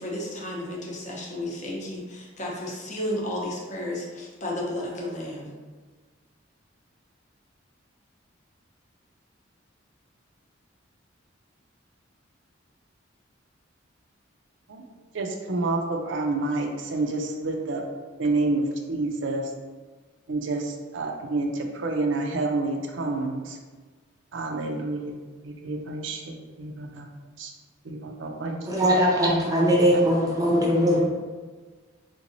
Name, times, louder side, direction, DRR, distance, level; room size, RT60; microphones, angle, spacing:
voice 1, 0.0-5.5, left 1 dB, 35° left, -3 dB, 0.7 m, -32 dB
voice 2, 15.1-17.8 18.2-19.5 20.3-23.6 24.3-25.2 25.4-27.1 27.4-27.5 27.8-29.0 29.9-30.0 30.3-30.4, right 2 dB, 65° right, 2 dB, 0.4 m, -29 dB
voice 3, 28.7-31.0, equal, 20° right, -3 dB, 0.6 m, -20 dB
3.7 x 3.0 x 2.6 m, 1.4 s
head